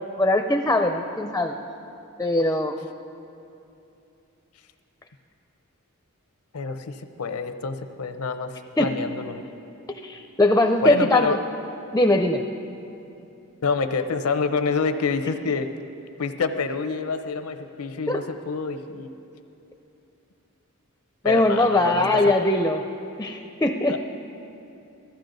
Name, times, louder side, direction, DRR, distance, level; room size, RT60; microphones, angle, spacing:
voice 1, 0.0-1.6 2.2-2.8 8.8-8.9 10.0-11.4 11.9-12.4 18.1-18.2 21.2-22.8 23.2-24.0, left 1 dB, 10° left, 5 dB, 0.4 m, -21 dB
voice 2, 6.5-9.4 10.8-11.4 13.6-15.7 16.2-19.1 21.2-22.0 23.9-24.0, left 4 dB, 85° left, 9 dB, 0.7 m, -27 dB
16.5 x 14.0 x 3.9 m, 2.8 s
head